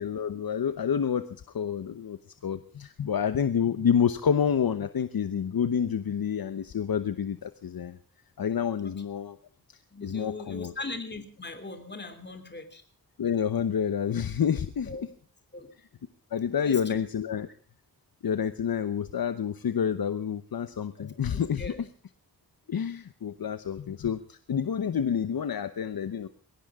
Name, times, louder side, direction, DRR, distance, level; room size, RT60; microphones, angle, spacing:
voice 1, 0.0-8.0 8.4-9.4 10.0-10.7 13.2-14.9 16.3-17.5 18.2-21.7 22.7-26.3, left 7 dB, 70° left, 11 dB, 1.0 m, -28 dB
voice 2, 9.9-12.8 14.9-15.1 15.5-15.7 16.6-17.0 21.3-21.8, left 3 dB, 30° left, 7 dB, 3.1 m, -39 dB
21.0 x 17.5 x 3.7 m, 0.41 s
wide cardioid pair, 95°, 37 cm